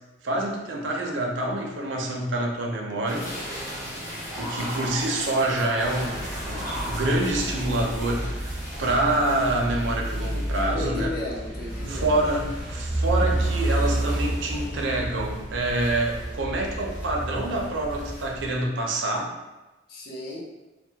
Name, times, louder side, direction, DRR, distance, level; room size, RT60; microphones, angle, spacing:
voice 1, 0.2-3.3 4.4-11.1 11.9-19.3, right 2 dB, 80° right, 0 dB, 0.4 m, -26 dB
sound 1, 3.1-10.7, equal, 15° left, 0.8 m, -36 dB
sound 2, 5.8-18.6, right 1 dB, 5° right, 0.5 m, -30 dB
sound 3, 7.5-18.5, equal, 85° left, 0.9 m, -44 dB
voice 2, 10.7-12.2 19.9-20.4, left 1 dB, 50° left, -4 dB, 0.5 m, -34 dB
2.2 x 2.1 x 2.7 m, 1.1 s
head